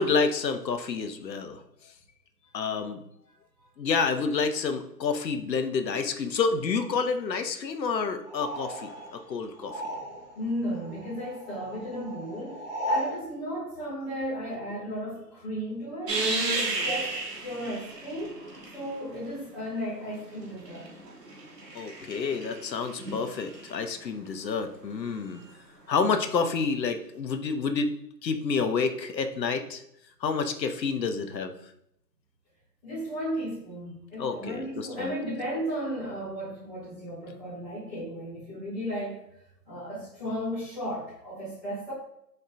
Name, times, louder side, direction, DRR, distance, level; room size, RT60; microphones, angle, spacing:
voice 1, 0.0-1.6 2.5-3.0 3.8-9.8 21.7-25.4 25.9-27.9 28.2-29.8 30.2-31.5 34.2-35.1, left 5 dB, 85° left, 8 dB, 0.7 m, -29 dB
sound 1, 8.2-10.5 10.7-13.2, equal, 35° right, 1.1 m, -35 dB
voice 2, 10.3-16.2 16.5-18.4 18.7-20.9 32.8-39.2 39.7-41.9, equal, ahead, -16 dB, 0.8 m, -35 dB
sound 2, 16.1-19.2 20.2-23.7 26.1-26.2, right 2 dB, 70° right, 1.1 m, -33 dB
4.3 x 2.2 x 3.8 m, 0.77 s
figure-of-eight pair, 150°, 50 cm